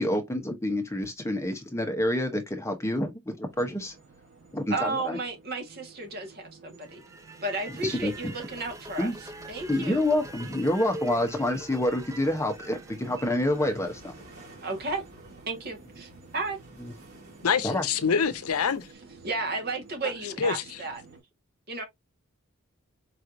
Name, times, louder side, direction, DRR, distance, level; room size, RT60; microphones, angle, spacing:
voice 1, 0.0-3.9 4.5-5.2 7.8-8.3 9.0-9.1 9.7-14.1 16.8-16.9 17.6-17.9, left 1 dB, 10° left, 0.8 m, -28 dB
sound 1, 3.5-21.2, right 4 dB, 60° right, 2.5 m, -52 dB
voice 2, 4.7-7.0 7.4-9.1 9.5-10.0 14.6-15.0 15.5-16.6 19.2-21.0 21.7-21.8, right 3 dB, 45° right, 1.5 m, -33 dB
sound 2, 6.8-14.9, right 2 dB, 15° right, 0.4 m, -44 dB
sound 3, 7.7-18.9, equal, 75° right, 2.9 m, -53 dB
voice 3, 17.4-18.9 20.4-20.8, left 6 dB, 80° left, 0.6 m, -26 dB
4.8 x 3.1 x 2.5 m
head